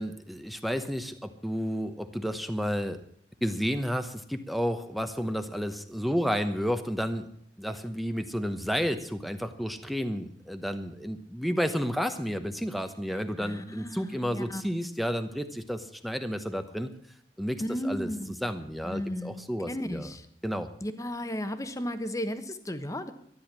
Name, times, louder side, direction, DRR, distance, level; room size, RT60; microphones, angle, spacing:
voice 1, 0.0-3.0 3.4-7.3 7.6-16.9 17.4-18.1 18.4-20.1 20.4-20.7, equal, ahead, 8 dB, 0.9 m, -31 dB
voice 2, 13.4-14.7 17.6-18.4 18.8-20.3 20.8-23.1, equal, 20° left, 9 dB, 1.2 m, -34 dB
13.5 x 10.5 x 7.5 m, 0.64 s
head